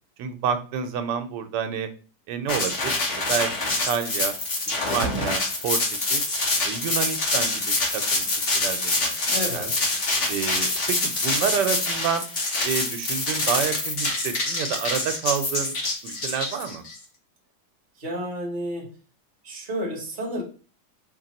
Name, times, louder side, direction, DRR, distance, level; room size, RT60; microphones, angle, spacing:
voice 1, 0.2-1.9 2.3-4.3 4.7-5.8 6.1-6.2 6.6-9.7 10.3-12.3 12.6-15.7 16.0-16.8, right 7 dB, 80° right, 8 dB, 1.2 m, -29 dB
sound 1, 2.5-16.9, left 2 dB, 45° left, 1.3 m, -25 dB
voice 2, 9.2-9.8 18.0-19.0 19.4-20.4, equal, 35° right, 0 dB, 1.0 m, -31 dB
3.0 x 3.0 x 3.9 m, 0.37 s
omnidirectional pair, 1.8 m